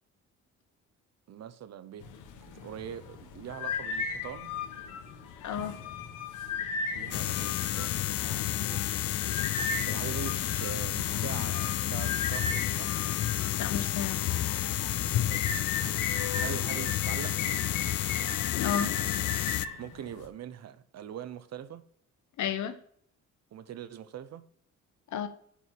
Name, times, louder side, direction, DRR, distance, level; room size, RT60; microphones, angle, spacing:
voice 1, 1.3-2.1 2.4-4.5 6.9-8.0 8.7-9.0 9.9-12.9 15.2-15.6 16.4-17.6 19.8-21.8 23.5-24.4, right 9 dB, 60° right, 0.8 m, -42 dB
sound 1, 2.0-20.3, left 5 dB, 90° left, 1.3 m, -37 dB
voice 2, 5.4-5.8 13.6-14.3 18.6-19.0 22.4-22.7 25.1-25.3, left 8 dB, 70° left, 1.0 m, -32 dB
sound 2, 7.1-19.7, left 13 dB, 55° left, 0.4 m, -30 dB
6.9 x 4.6 x 6.1 m
cardioid pair, 90°, 30 cm